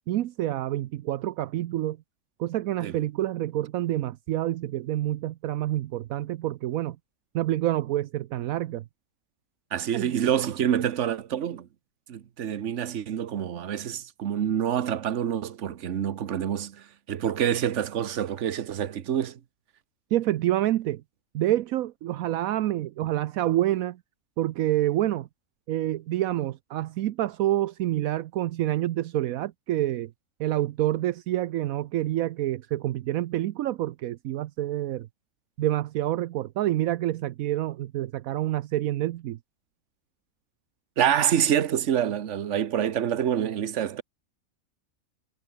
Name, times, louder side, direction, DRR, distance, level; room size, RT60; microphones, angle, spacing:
voice 1, 0.1-2.0 2.4-7.0 7.3-8.8 9.9-10.1 20.1-21.0 21.3-24.0 24.4-25.3 25.7-30.1 30.4-35.1 35.6-39.4, right 14 dB, 75° right, 1.0 m, -27 dB
voice 2, 9.7-11.7 12.1-19.4 41.0-44.0, right 9 dB, 60° right, 1.2 m, -27 dB
omnidirectional pair, 1.5 m